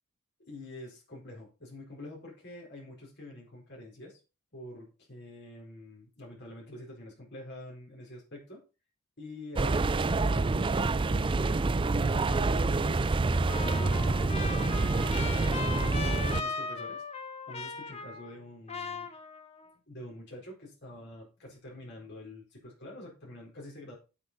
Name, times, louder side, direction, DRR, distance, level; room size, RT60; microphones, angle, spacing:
voice 1, 0.4-4.2 4.5-8.6 9.2-11.6 12.0-14.3 14.6-16.0 16.4-17.0 17.5-19.1 19.9-23.9, left 1 dB, 55° left, -2 dB, 4.7 m, -46 dB
sound 1, 9.6-16.4, right 3 dB, 25° right, 0.4 m, -27 dB
Trumpet, 13.5-18.4 18.7-19.7, left 4 dB, 30° left, 1.2 m, -38 dB
8.2 x 7.8 x 5.5 m, 0.31 s
head